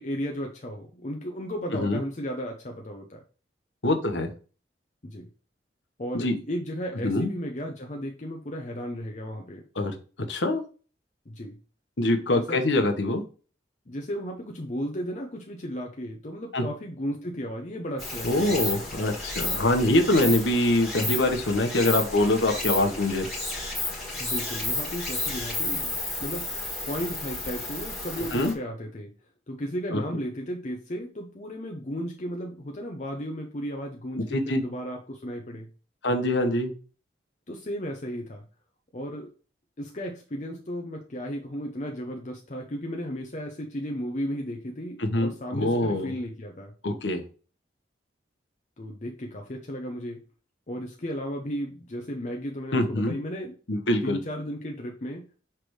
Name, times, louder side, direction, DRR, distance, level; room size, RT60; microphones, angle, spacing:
voice 1, 0.0-3.2 5.0-5.3 6.0-9.6 11.3-11.6 12.3-12.6 13.9-18.9 24.2-26.5 26.8-29.1 29.5-35.7 37.5-38.4 38.9-39.3 39.8-46.7 48.8-50.2 50.7-53.6 54.0-55.3, equal, 40° left, 2 dB, 0.7 m, -34 dB
voice 2, 1.7-2.0 3.8-4.3 6.1-6.4 7.0-7.3 9.8-9.9 10.3-10.6 12.0-13.2 16.5-16.6 18.2-23.3 28.3-28.5 29.9-30.0 34.3-34.6 36.0-36.7 45.0-46.1 46.8-47.2 52.7-53.1 53.7-54.2, left 1 dB, 80° left, 5 dB, 1.1 m, -24 dB
Stream, 18.0-28.5, left 2 dB, ahead, 1.7 m, -32 dB
5.9 x 3.3 x 4.7 m, 0.37 s
head